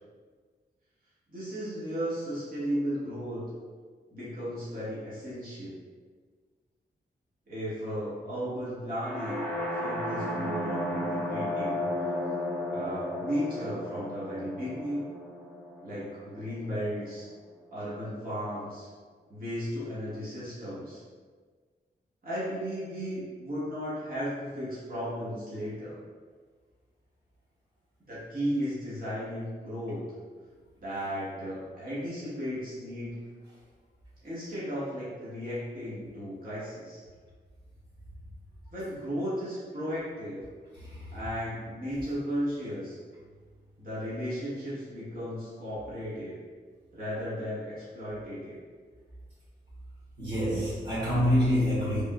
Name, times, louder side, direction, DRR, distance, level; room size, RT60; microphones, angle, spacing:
voice 1, 1.3-3.4 4.1-5.8 7.5-9.5 9.7-11.8 12.7-15.0 15.8-17.2 17.7-18.9 19.3-21.0 22.2-26.0 28.1-30.0 30.8-33.2 34.2-37.0 38.7-40.4 41.1-43.0 43.8-46.4 46.9-48.6, equal, 55° right, -11 dB, 1.5 m, -35 dB
sound 1, 9.0-16.8, left 1 dB, 10° left, 1.2 m, -34 dB
voice 2, 40.7-41.2 50.2-52.0, equal, 75° right, -11 dB, 1.4 m, -27 dB
3.5 x 2.5 x 2.3 m, 1.5 s
cardioid pair, 70°, 18 cm